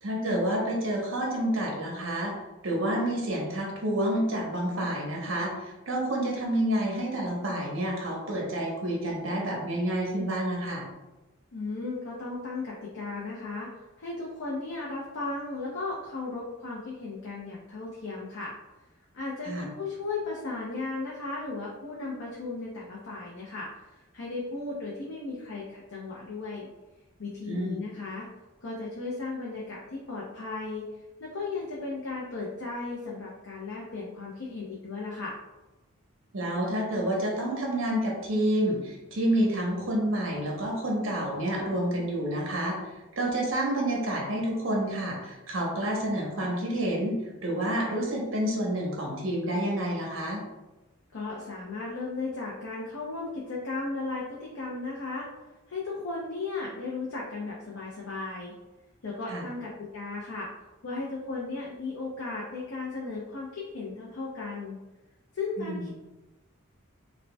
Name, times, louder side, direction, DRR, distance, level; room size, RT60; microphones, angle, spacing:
voice 1, 0.0-2.3 2.6-10.8 19.4-19.7 27.5-27.8 36.3-42.8 43.2-50.4 59.3-59.5 65.6-65.9, right 1 dB, 65° right, -1 dB, 0.9 m, -29 dB
voice 2, 11.5-13.7 14.0-18.5 19.1-23.7 24.1-26.7 27.2-28.2 28.6-30.9 31.2-35.4 51.1-55.3 55.7-58.5 59.0-60.5 60.8-64.8 65.3-65.9, left 3 dB, 75° left, -5 dB, 0.6 m, -35 dB
5.0 x 2.2 x 2.2 m, 1.1 s
head